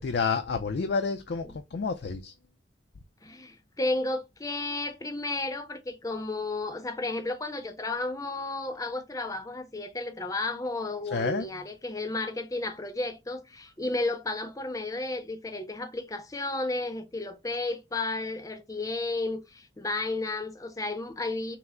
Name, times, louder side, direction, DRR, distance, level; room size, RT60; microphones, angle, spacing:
voice 1, 0.0-2.3 11.1-11.5, left 5 dB, 60° left, 0.4 m, -29 dB
voice 2, 3.2-21.6, left 2 dB, 20° left, 0.6 m, -33 dB
5.6 x 2.1 x 3.6 m
head